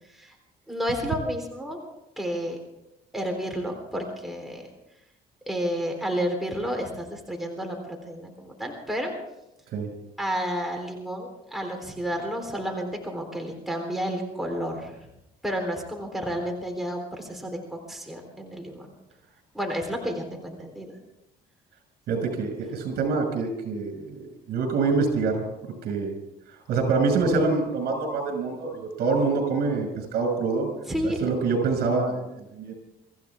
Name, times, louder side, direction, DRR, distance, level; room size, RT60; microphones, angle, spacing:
voice 1, 0.7-1.8 2.2-2.6 3.1-4.7 5.5-9.1 10.2-15.0 15.4-18.9 19.5-21.0 30.9-31.3, equal, ahead, 1 dB, 3.7 m, -31 dB
voice 2, 22.1-25.4 25.8-26.1 26.7-30.7 31.0-32.7, right 4 dB, 70° right, 4 dB, 6.2 m, -25 dB
25.0 x 15.0 x 3.6 m, 0.85 s
cardioid pair, 110°, 17 cm